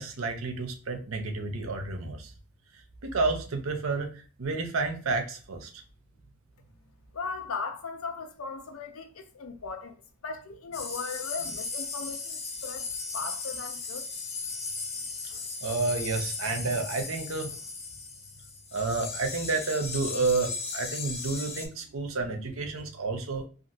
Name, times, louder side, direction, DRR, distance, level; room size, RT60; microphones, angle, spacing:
voice 1, 0.0-2.3 2.7-5.8 15.2-17.6 18.7-23.4, right 3 dB, 80° right, 0.7 m, -30 dB
voice 2, 7.1-10.0 10.2-14.1, left 4 dB, 85° left, 0.6 m, -38 dB
sound 1, 10.7-21.7, left 4 dB, 30° left, 0.5 m, -37 dB
2.8 x 2.5 x 2.5 m
head